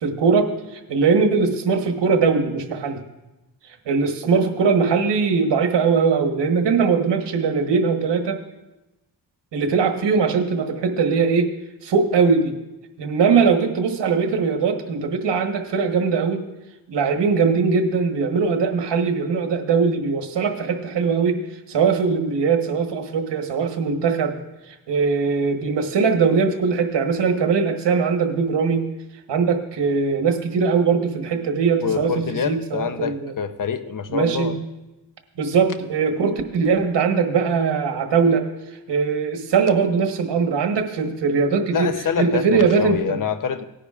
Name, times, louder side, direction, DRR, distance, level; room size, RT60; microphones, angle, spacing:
voice 1, 0.0-0.5 0.9-3.0 3.7-8.4 9.5-11.5 11.8-12.5 13.0-16.5 16.9-21.4 21.7-24.4 24.7-28.9 29.3-33.3 34.1-34.6 35.4-38.5 38.9-43.2, right 5 dB, 80° right, 5 dB, 1.3 m, -20 dB
voice 2, 31.8-34.6 41.7-43.6, left 7 dB, 50° left, 11 dB, 0.8 m, -26 dB
18.5 x 10.0 x 2.4 m, 1.0 s
cardioid pair, 90°, 42 cm